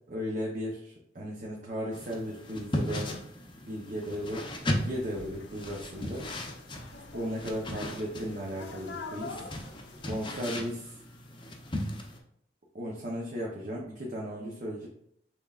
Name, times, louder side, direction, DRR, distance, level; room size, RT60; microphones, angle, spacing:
voice 1, 0.1-3.1 3.6-6.2 7.1-9.3 10.1-10.9 12.7-14.9, equal, 50° right, -2 dB, 0.8 m, -36 dB
sound 1, 1.9-12.2, left 1 dB, 30° left, 0.7 m, -37 dB
sound 2, 4.5-10.4, left 3 dB, 80° left, 0.6 m, -46 dB
6.1 x 3.5 x 2.4 m, 0.70 s
head